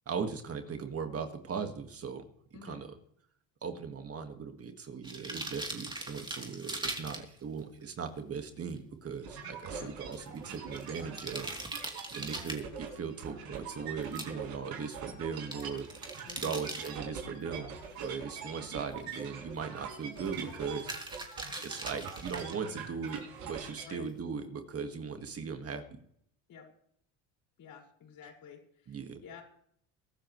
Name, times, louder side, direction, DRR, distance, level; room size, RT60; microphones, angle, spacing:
voice 1, 0.1-2.2 2.6-2.9 3.6-11.5 12.1-15.9 16.4-17.7 18.0-20.9 21.6-25.8 28.9-29.2, right 6 dB, 35° right, 6 dB, 1.9 m, -38 dB
sound 1, 5.0-7.6 8.2-8.3 8.5-8.6 8.8-8.9 10.1-12.6 14.0-14.2 15.5-16.9 18.1-18.2 19.1-19.2 19.6-19.8 20.2-20.5 20.8-22.5 23.1-23.2, right 2 dB, 10° right, 3.1 m, -40 dB
sound 2, 9.2-23.9, right 6 dB, 60° right, 5.2 m, -43 dB
voice 2, 16.3-16.6 23.8-24.1 26.5-26.7 27.6-29.4, left 6 dB, 55° left, 0 dB, 5.6 m, -50 dB
23.0 x 12.5 x 3.2 m, 0.67 s
supercardioid pair, 100°, 41 cm